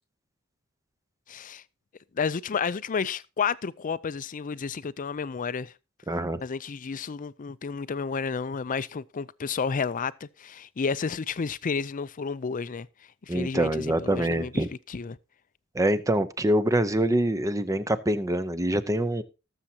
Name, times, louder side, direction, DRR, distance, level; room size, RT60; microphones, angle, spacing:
voice 1, 1.3-1.6 2.1-5.7 6.4-12.9 13.3-14.6 14.9-15.2, left 5 dB, 40° left, 0.5 m, -31 dB
voice 2, 6.1-6.4 13.3-14.7 15.7-19.2, right 1 dB, 15° right, 0.7 m, -25 dB
19.0 x 7.2 x 2.8 m
head